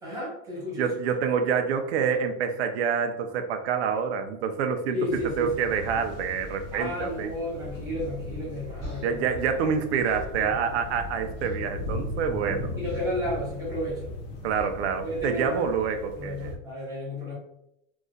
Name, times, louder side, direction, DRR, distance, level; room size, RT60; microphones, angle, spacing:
voice 1, 0.0-0.9 4.9-5.5 6.7-9.2 10.3-10.5 12.8-14.1 15.0-15.7 16.1-17.4, left 1 dB, 10° right, -6 dB, 1.3 m, -32 dB
voice 2, 0.8-5.0 5.4-7.3 9.0-12.7 14.4-16.6, right 6 dB, 50° right, 6 dB, 0.6 m, -27 dB
sound 1, 5.1-16.6, left 2 dB, 35° left, 0.4 m, -38 dB
sound 2, 8.8-11.1 11.3-11.8 12.8-13.1 14.5-14.8, left 2 dB, 15° left, 1.1 m, -46 dB
3.0 x 2.6 x 3.6 m, 0.80 s
supercardioid pair, 160°, 42 cm